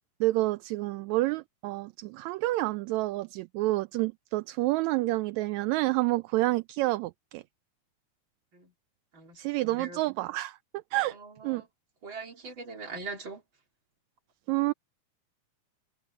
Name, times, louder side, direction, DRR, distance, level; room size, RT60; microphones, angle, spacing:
voice 1, 0.2-7.4 9.4-10.6 10.9-11.2 11.4-11.6 14.5-14.7, right 18 dB, 80° right, 1.9 m, -28 dB
voice 2, 11.1-11.7 12.0-13.4, right 4 dB, 40° right, 3.9 m, -41 dB
omnidirectional pair, 3.4 m